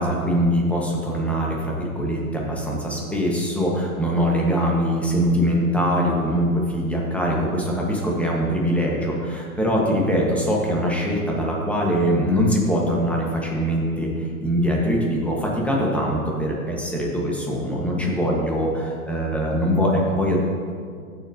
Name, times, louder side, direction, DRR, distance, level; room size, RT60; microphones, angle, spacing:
voice 1, 0.0-20.4, equal, 5° left, -2 dB, 1.3 m, -22 dB
13.5 x 6.9 x 2.8 m, 2.1 s
hypercardioid pair, 135°, 44 cm